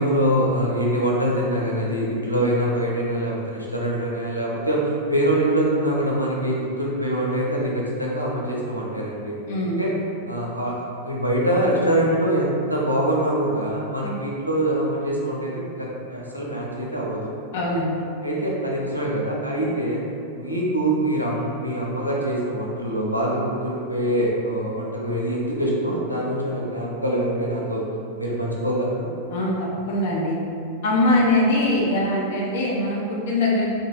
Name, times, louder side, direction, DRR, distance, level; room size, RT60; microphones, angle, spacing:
voice 1, 0.0-9.4 9.6-9.9 10.3-17.3 18.2-20.0 20.3-27.8 28.2-29.1, right 1 dB, 90° right, -4 dB, 0.5 m, -24 dB
voice 2, 9.5-9.8 14.0-14.2 17.5-18.0 29.3-29.6 29.9-30.4 30.8-33.7, left 1 dB, 55° left, -4 dB, 0.6 m, -22 dB
3.0 x 2.1 x 3.2 m, 2.4 s
figure-of-eight pair, 90°, 0 cm